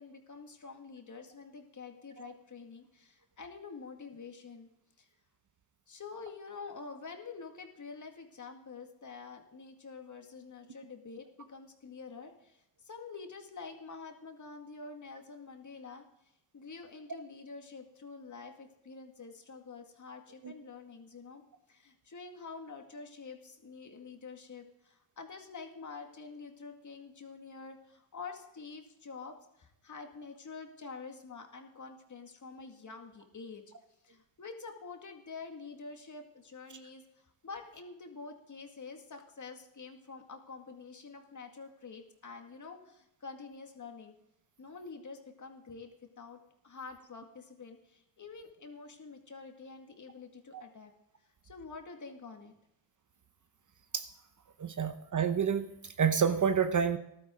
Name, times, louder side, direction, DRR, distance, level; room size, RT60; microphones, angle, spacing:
voice 1, 0.0-4.7 5.0-5.1 5.9-16.0 16.5-21.4 21.7-33.6 34.0-37.0 37.4-44.2 44.6-45.9 46.2-50.9 51.4-52.5, left 4 dB, 35° left, 4 dB, 2.1 m, -47 dB
voice 2, 54.6-57.0, right 7 dB, 35° right, 9 dB, 0.9 m, -29 dB
14.5 x 12.0 x 3.8 m, 0.81 s
cardioid pair, 75°, 49 cm